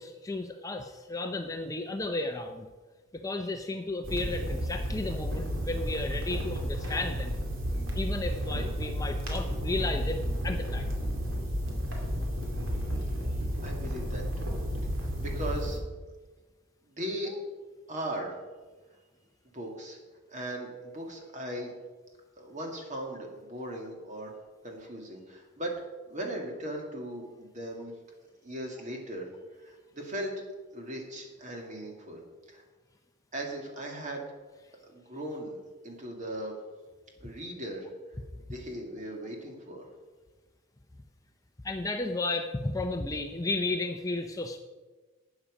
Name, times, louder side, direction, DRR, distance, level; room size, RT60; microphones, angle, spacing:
voice 1, 0.0-2.7 3.1-7.3 7.9-11.0 41.6-44.6, left 2 dB, 15° left, 5 dB, 0.5 m, -33 dB
sound 1, 4.0-15.8, equal, 65° right, 2.5 m, -32 dB
voice 2, 13.6-14.5 14.8-15.8 16.9-17.3 17.9-18.4 19.5-20.0 20.3-21.7 22.4-24.3 24.6-25.8 26.1-27.9 28.4-30.3 30.7-32.2 32.5-32.6 33.3-34.2 34.8-36.5 37.2-37.9 38.5-39.9, right 1 dB, 35° right, 1 dB, 2.1 m, -38 dB
12.0 x 8.8 x 5.0 m, 1.3 s
head